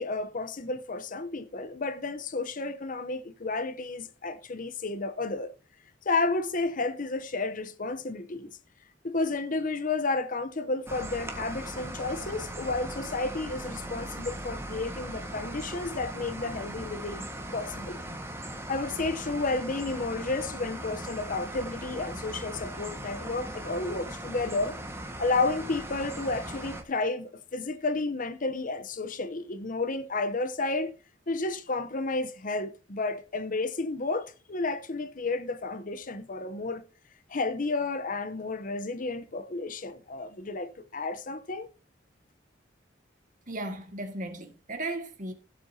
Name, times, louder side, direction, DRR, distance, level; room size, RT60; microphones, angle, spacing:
voice 1, 0.0-5.5 6.0-8.5 9.0-17.3 17.5-18.0 18.7-24.8 25.2-30.9 31.3-36.8 37.3-41.7, left 3 dB, 45° left, 0.8 m, -31 dB
sound 1, 10.9-26.8, right 1 dB, 15° right, 1.6 m, -39 dB
voice 2, 43.5-45.3, right 2 dB, 45° right, 1.8 m, -36 dB
16.0 x 7.6 x 2.8 m
head